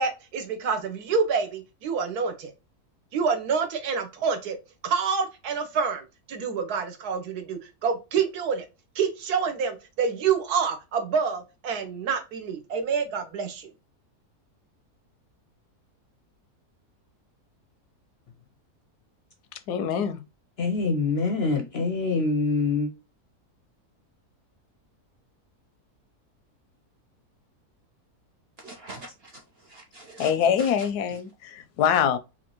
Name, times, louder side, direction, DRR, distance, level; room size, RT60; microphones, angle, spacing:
voice 1, 0.0-2.5 3.1-4.6 4.8-8.6 8.9-13.7, right 6 dB, 80° right, 1.4 m, -27 dB
voice 2, 19.7-20.2 30.2-32.2, left 8 dB, 85° left, 1.1 m, -24 dB
voice 3, 20.6-22.9, left 3 dB, 60° left, 0.6 m, -25 dB
voice 4, 28.6-30.3 30.6-31.2, right 2 dB, 60° right, 0.6 m, -43 dB
4.3 x 2.6 x 2.9 m
omnidirectional pair, 1.6 m